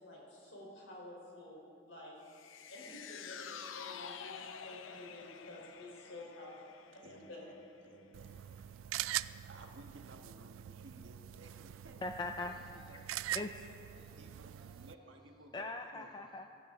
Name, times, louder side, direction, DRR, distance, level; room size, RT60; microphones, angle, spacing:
voice 1, 0.0-2.1 2.7-6.6 7.1-7.5, left 1 dB, 70° left, -3 dB, 4.0 m, -51 dB
sound 1, 2.3-8.7 9.1-9.2, left 7 dB, 90° left, 0.6 m, -50 dB
voice 2, 4.1-4.6 5.2-5.3 7.0-7.5 7.8-8.4 8.8-12.0 12.5-13.3 13.9-16.1, right 2 dB, 75° right, 2 dB, 1.4 m, -58 dB
sound 2, 8.1-14.9, right 13 dB, 90° right, 0.3 m, -43 dB
voice 3, 12.0-13.0 13.3-14.0 15.5-16.5, left 2 dB, 20° left, 5 dB, 0.4 m, -42 dB
16.0 x 14.0 x 3.8 m, 2.4 s
head